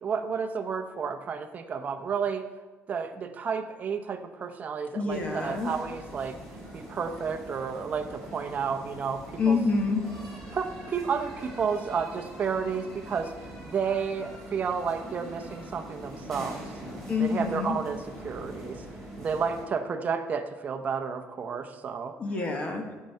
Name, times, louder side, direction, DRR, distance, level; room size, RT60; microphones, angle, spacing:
voice 1, 0.0-2.5 2.9-6.3 6.7-9.6 10.5-16.6 17.2-18.9 19.2-22.1, right 6 dB, 30° right, 7 dB, 0.7 m, -31 dB
voice 2, 4.9-5.7 9.4-10.0 17.1-17.8 22.2-22.9, left 4 dB, 25° left, 4 dB, 1.0 m, -27 dB
sound 1, 5.1-19.6, right 1 dB, 5° left, 2.8 m, -43 dB
15.0 x 6.5 x 4.5 m, 1.3 s
cardioid pair, 170°, 5 cm